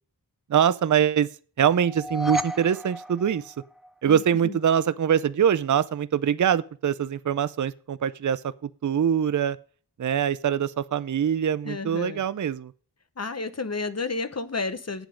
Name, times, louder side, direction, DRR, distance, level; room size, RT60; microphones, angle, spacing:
voice 1, 0.5-1.3 1.6-3.5 4.0-9.6 10.0-12.7, right 8 dB, 45° right, 0.5 m, -23 dB
sound 1, 1.8-4.1, equal, ahead, 0.6 m, -32 dB
voice 2, 4.1-4.6 11.6-12.2 13.2-15.1, left 3 dB, 40° left, 1.0 m, -31 dB
9.0 x 7.5 x 5.1 m
wide cardioid pair, 50°, 41 cm